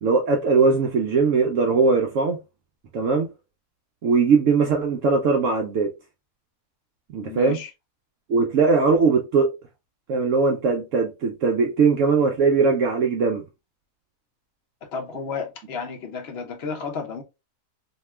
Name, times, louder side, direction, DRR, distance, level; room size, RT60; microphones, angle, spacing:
voice 1, 0.0-2.4 2.9-3.3 4.0-5.9 7.1-7.6 8.3-9.5 10.1-13.4, right 4 dB, 65° right, 0.8 m, -20 dB
voice 2, 7.2-7.7 14.8-17.2, left 5 dB, 60° left, 0.6 m, -32 dB
2.8 x 2.3 x 3.0 m
omnidirectional pair, 1.7 m